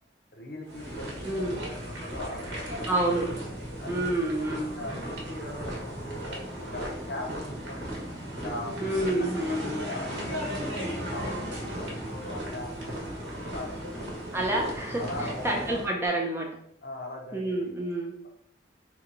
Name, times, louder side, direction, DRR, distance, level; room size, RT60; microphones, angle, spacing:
voice 1, 0.3-1.4 1.7-3.0 3.8-7.9 8.3-14.2 15.0-16.2 16.8-17.7, left 1 dB, 55° left, 0 dB, 0.7 m, -40 dB
sound 1, 0.7-15.9, equal, 80° right, 1.0 m, -36 dB
voice 2, 1.2-1.6 2.9-3.3 3.9-4.7 8.8-9.8 14.3-15.1 15.4-16.5 17.3-18.1, right 1 dB, 15° right, 0 dB, 0.4 m, -28 dB
2.9 x 2.2 x 3.7 m, 0.71 s
head